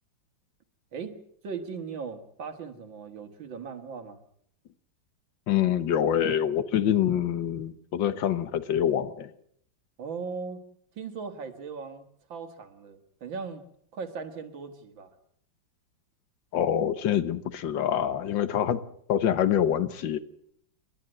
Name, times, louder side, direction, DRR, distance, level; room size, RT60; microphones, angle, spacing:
voice 1, 0.9-4.2 10.0-10.6 11.0-12.0 12.3-13.6 13.9-15.1, right 5 dB, 80° right, 7 dB, 2.5 m, -38 dB
voice 2, 5.5-9.3 16.5-18.8 19.1-20.2, left 10 dB, 75° left, 13 dB, 1.7 m, -25 dB
29.5 x 12.0 x 7.7 m, 0.68 s
omnidirectional pair, 2.1 m